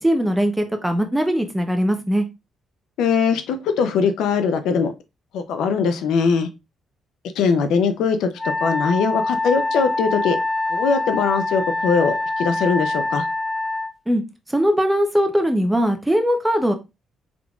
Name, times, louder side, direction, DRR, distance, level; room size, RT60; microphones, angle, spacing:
voice 1, 0.0-2.3 14.1-14.2 14.5-16.7, equal, 10° right, 6 dB, 0.8 m, -20 dB
voice 2, 3.0-4.9 5.3-6.5 7.4-10.4 10.7-13.3, left 5 dB, 85° left, 8 dB, 0.5 m, -21 dB
Wind instrument woodwind instrument, 8.4-13.9, left 2 dB, 5° left, 0.3 m, -24 dB
3.7 x 3.6 x 2.3 m, 0.25 s
cardioid pair, 90°, 0 cm